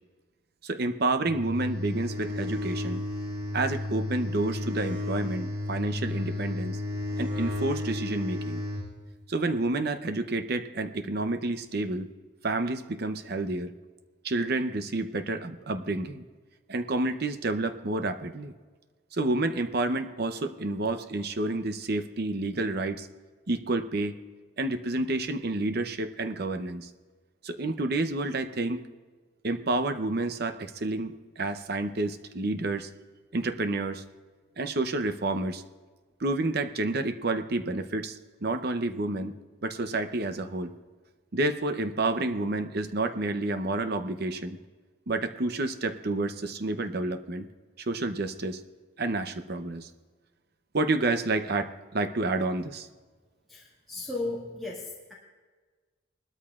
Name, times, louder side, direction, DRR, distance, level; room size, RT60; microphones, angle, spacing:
voice 1, 0.6-3.0 3.5-6.8 7.2-8.6 9.3-12.1 12.4-13.7 14.2-16.2 16.7-18.5 19.1-23.1 23.5-24.1 24.6-26.9 27.4-28.8 29.4-32.9 33.3-34.0 34.6-35.6 36.2-39.3 39.6-40.7 41.3-44.6 45.1-47.5 47.8-48.6 49.0-49.9 50.7-52.9, right 2 dB, 50° right, 8 dB, 0.7 m, -29 dB
sound 1, 1.3-8.9, left 1 dB, 20° right, 4.5 m, -33 dB
voice 2, 53.5-55.1, left 2 dB, ahead, -8 dB, 1.8 m, -35 dB
20.0 x 13.0 x 2.4 m, 1.4 s
head